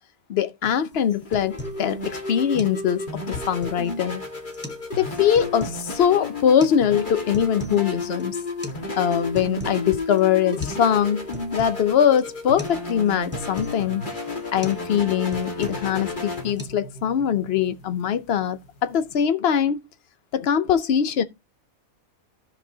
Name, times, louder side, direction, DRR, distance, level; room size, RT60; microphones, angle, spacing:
voice 1, 0.3-4.2 5.0-8.4 8.9-14.0 14.5-19.8 20.3-21.2, left 9 dB, 55° left, 0.8 m, -22 dB
sound 1, 0.6-0.8 1.1-1.8 2.2-2.3 2.6-2.8 3.1-3.9 4.5-4.9 5.1-5.8 6.6-6.8 7.1-7.8 8.1-8.2 8.6-8.8 9.1-9.8 10.2-10.3 10.6-10.8 11.1-11.8 12.2-12.3 12.6-12.8 13.1-13.8 14.2-14.3 14.6-14.8 15.1-15.9 16.2-16.6, equal, 10° left, 1.0 m, -37 dB
sound 2, 0.9-19.2, left 2 dB, 35° left, 1.7 m, -33 dB
13.5 x 6.0 x 2.7 m
omnidirectional pair, 1.5 m